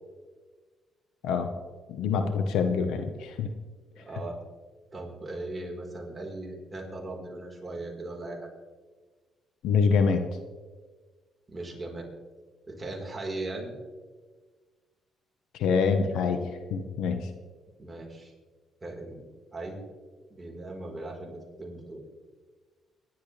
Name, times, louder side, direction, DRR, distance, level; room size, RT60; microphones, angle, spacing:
voice 1, 1.9-3.5 9.6-10.2 15.6-16.4 16.7-17.2, left 5 dB, 90° left, 7 dB, 1.1 m, -25 dB
voice 2, 3.9-4.4 4.9-8.5 11.5-12.1 12.7-13.7 17.8-18.3 18.8-19.3 19.5-19.8 20.3-22.0, right 2 dB, 20° right, -1 dB, 4.4 m, -38 dB
23.0 x 11.5 x 3.4 m, 1.4 s
cardioid pair, 90°, 0 cm